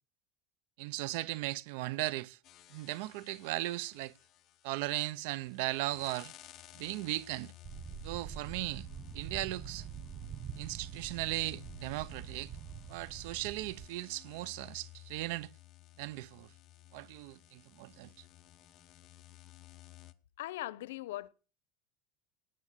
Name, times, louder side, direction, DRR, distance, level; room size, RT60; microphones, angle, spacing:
voice 1, 0.8-2.4 2.7-4.1 4.6-6.3 6.7-7.5 8.0-8.9 9.1-9.9 10.6-12.5 12.9-15.5 16.0-16.5 16.9-18.1, right 18 dB, 70° right, 0.7 m, -37 dB
sound 1, 2.4-20.1, left 15 dB, 40° left, 1.0 m, -56 dB
sound 2, 7.6-13.9, right 8 dB, 35° right, 1.0 m, -45 dB
voice 2, 20.4-21.3, left 15 dB, 90° left, 0.8 m, -39 dB
19.0 x 8.1 x 6.6 m
supercardioid pair, 135°, 0 cm